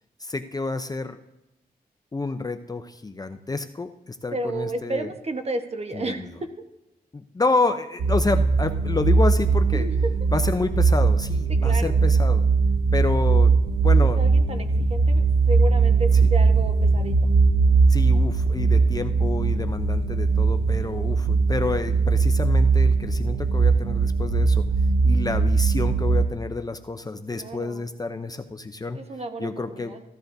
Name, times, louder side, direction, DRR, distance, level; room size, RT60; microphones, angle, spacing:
voice 1, 0.2-1.2 2.1-5.1 5.9-6.3 7.1-9.9 10.3-12.4 12.9-14.2 16.2-16.3 17.9-24.6 25.0-29.0 29.4-29.9, left 3 dB, 25° left, 8 dB, 0.6 m, -29 dB
voice 2, 4.3-6.5 9.7-10.0 11.5-12.0 14.2-17.1 27.4-27.9 28.9-30.0, right 2 dB, 40° right, 6 dB, 1.2 m, -32 dB
sound 1, 8.0-26.3, right 4 dB, 80° right, 0.9 m, -20 dB
15.5 x 13.0 x 2.7 m, 0.92 s
cardioid pair, 75°, 17 cm